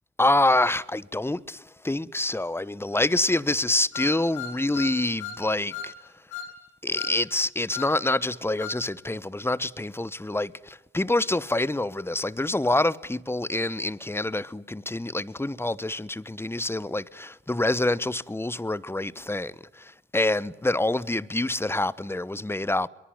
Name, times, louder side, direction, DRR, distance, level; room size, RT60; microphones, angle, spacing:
voice 1, 0.2-5.9 6.8-22.9, left 2 dB, 10° left, 1.0 m, -26 dB
sound 1, 3.9-5.4 5.7-5.9 6.3-6.5 6.9-7.2 7.7-7.9 8.6-8.8, left 8 dB, 75° left, 3.1 m, -36 dB
25.5 x 23.0 x 9.4 m
hypercardioid pair, 40°, 29 cm